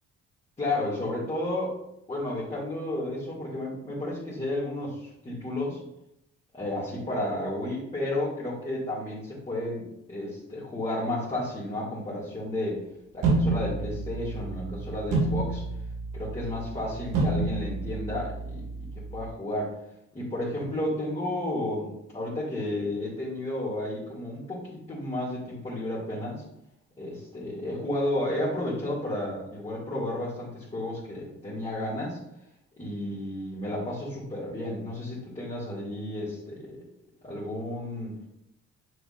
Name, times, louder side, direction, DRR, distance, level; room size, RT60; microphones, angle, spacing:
voice 1, 0.6-1.7 2.1-5.8 6.5-12.8 13.1-15.6 16.1-18.9 19.1-19.7 20.1-26.4 27.0-32.2 32.8-36.8 37.2-38.3, left 1 dB, 20° left, -7 dB, 2.5 m, -32 dB
sound 1, 13.2-19.3, right 3 dB, 90° right, 2.0 m, -29 dB
6.6 x 6.6 x 2.6 m, 0.81 s
cardioid pair, 90°, 30 cm